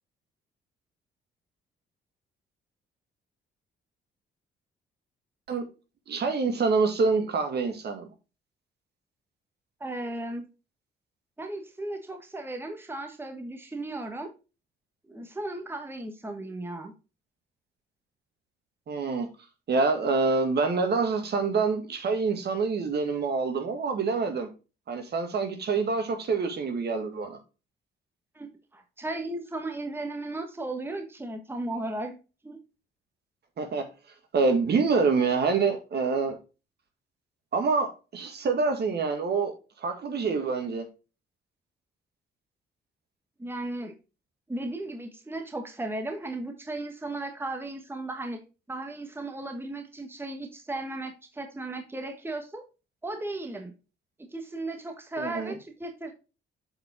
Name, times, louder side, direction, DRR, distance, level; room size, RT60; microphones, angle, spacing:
voice 1, 6.1-8.1 18.9-19.3 19.7-24.5 24.9-27.4 33.6-33.8 34.3-36.4 37.5-39.5 39.8-40.9 55.2-55.5, right 4 dB, 55° right, 1.8 m, -26 dB
voice 2, 9.8-10.5 11.4-14.3 15.1-16.9 28.3-32.1 32.4-32.6 43.4-43.9 44.5-48.4 48.7-52.6 53.0-53.7 54.2-56.1, right 2 dB, 10° right, 1.4 m, -35 dB
7.7 x 4.7 x 3.6 m
cardioid pair, 90°, 20 cm